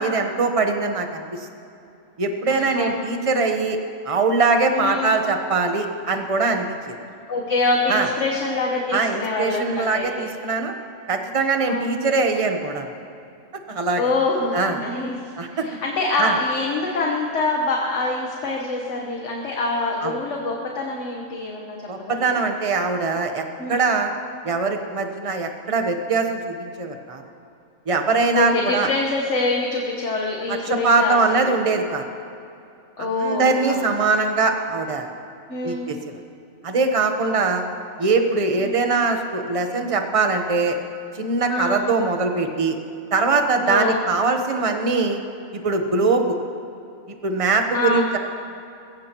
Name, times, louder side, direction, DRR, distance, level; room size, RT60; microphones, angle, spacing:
voice 1, 0.0-1.4 2.2-3.8 4.1-6.7 7.9-8.1 8.9-10.7 11.1-12.9 13.7-14.0 14.5-14.8 15.4-15.7 16.2-16.3 20.0-20.2 21.9-24.1 24.4-27.2 27.9-28.9 30.5-32.0 33.0-35.1 35.6-36.0 36.6-37.6 38.0-40.8 41.2-42.8 43.1-45.2 45.5-46.4 47.2-48.2, right 3 dB, 30° right, 5 dB, 1.0 m, -22 dB
voice 2, 2.5-2.9 4.7-5.2 7.3-10.3 11.6-12.1 14.0-21.8 22.0-22.5 23.6-24.0 28.3-31.5 33.0-34.1 35.5-35.9 37.3-37.6 38.6-38.8 41.5-41.9 43.7-44.0 47.7-48.1, left 2 dB, 65° left, -1 dB, 1.5 m, -25 dB
21.0 x 16.0 x 3.0 m, 2.6 s
omnidirectional pair, 1.4 m